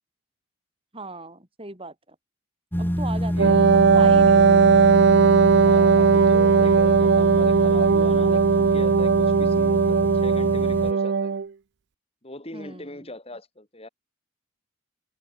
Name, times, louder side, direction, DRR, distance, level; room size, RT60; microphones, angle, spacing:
voice 1, 0.9-2.2 2.8-3.6 3.9-4.6 12.5-13.1, right 3 dB, 25° right, 6.3 m, -38 dB
sound 1, 2.7-10.9, equal, 10° left, 3.0 m, -28 dB
Wind instrument woodwind instrument, 3.4-11.5, right 5 dB, 55° right, 0.5 m, -18 dB
voice 2, 5.6-11.3 12.2-13.9, left 1 dB, 30° left, 5.7 m, -39 dB
head